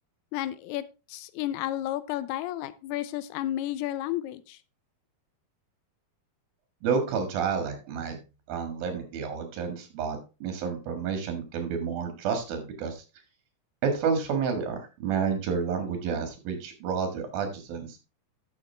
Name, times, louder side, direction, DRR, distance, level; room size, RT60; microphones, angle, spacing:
voice 1, 0.3-4.6, left 13 dB, 90° left, 15 dB, 2.7 m, -32 dB
voice 2, 6.8-8.2 8.5-13.0 13.8-18.0, right 6 dB, 70° right, 6 dB, 3.5 m, -30 dB
11.5 x 7.1 x 3.4 m, 0.30 s
omnidirectional pair, 4.5 m